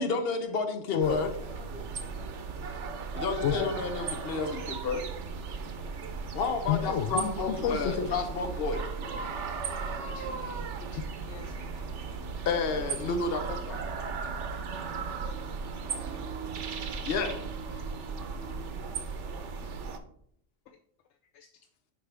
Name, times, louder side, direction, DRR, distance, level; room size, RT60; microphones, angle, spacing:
voice 1, 0.0-1.3 3.1-5.0 6.3-8.8 9.9-10.3 12.4-13.8 17.0-17.4, left 4 dB, 60° left, 6 dB, 1.1 m, -31 dB
voice 2, 1.0-1.9 7.6-9.8 12.7-13.1 19.3-19.8, equal, 25° right, -7 dB, 2.6 m, -51 dB
sound 1, 1.0-20.0, right 5 dB, 90° right, 1.1 m, -36 dB
voice 3, 6.7-7.3 7.6-8.1 10.0-12.0 21.3-21.5, left 8 dB, 80° left, 6 dB, 0.9 m, -32 dB
11.5 x 4.6 x 3.4 m, 0.68 s
omnidirectional pair, 1.2 m